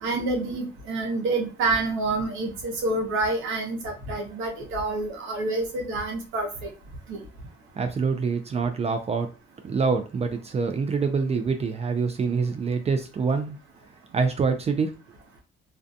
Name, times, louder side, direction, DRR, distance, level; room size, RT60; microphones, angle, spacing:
voice 1, 0.0-6.7 7.1-7.2, right 2 dB, 85° right, 1 dB, 0.8 m, -28 dB
voice 2, 7.8-9.3 9.6-13.6 14.1-14.9, right 5 dB, 35° right, 7 dB, 0.4 m, -25 dB
2.3 x 2.2 x 2.6 m, 0.34 s
cardioid pair, 90°, 20 cm